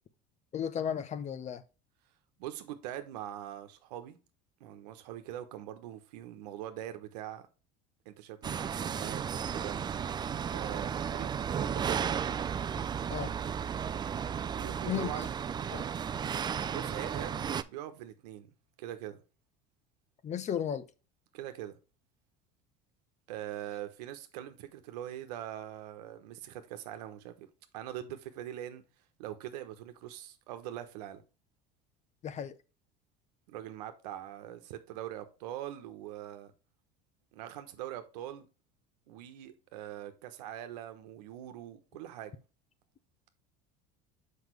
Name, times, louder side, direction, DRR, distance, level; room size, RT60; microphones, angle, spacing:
voice 1, 0.5-1.6 13.1-13.3 14.9-15.3 15.7-15.9 20.2-20.9 32.2-32.6, left 9 dB, 35° left, 0.7 m, -34 dB
voice 2, 2.4-4.2 4.6-7.5 8.0-9.8 10.5-12.1 14.6-15.3 16.7-18.5 18.8-19.2 21.3-21.8 23.3-27.5 27.7-28.8 29.2-31.2 33.5-36.5 37.3-38.5 39.1-42.3, right 12 dB, 90° right, 1.1 m, -42 dB
sound 1, 8.4-17.6, right 7 dB, 20° right, 0.4 m, -34 dB
6.1 x 5.3 x 3.1 m
supercardioid pair, 110°, 20 cm